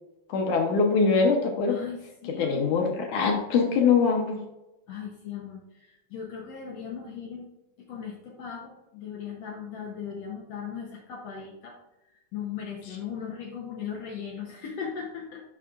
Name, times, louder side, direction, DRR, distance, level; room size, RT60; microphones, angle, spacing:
voice 1, 0.3-1.8 2.4-4.4, left 5 dB, 70° left, 2 dB, 2.0 m, -23 dB
voice 2, 1.7-2.9 4.9-7.5 7.8-11.8 12.3-15.4, left 7 dB, 85° left, 0 dB, 1.4 m, -38 dB
11.5 x 5.5 x 2.5 m, 0.94 s
omnidirectional pair, 4.3 m